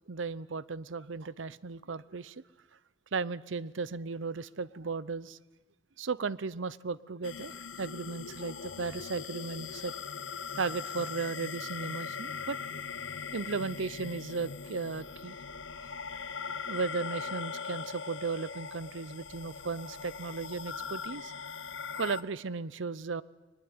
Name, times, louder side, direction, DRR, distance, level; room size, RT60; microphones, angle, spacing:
voice 1, 0.1-2.4 3.1-5.4 6.0-10.0 10.6-12.8 13.3-15.4 16.1-16.2 16.7-21.3 22.0-23.2, right 4 dB, 80° right, 19 dB, 0.7 m, -36 dB
sound 1, 7.2-22.2, left 6 dB, 80° left, 1.0 m, -40 dB
22.5 x 20.5 x 9.6 m, 1.2 s
head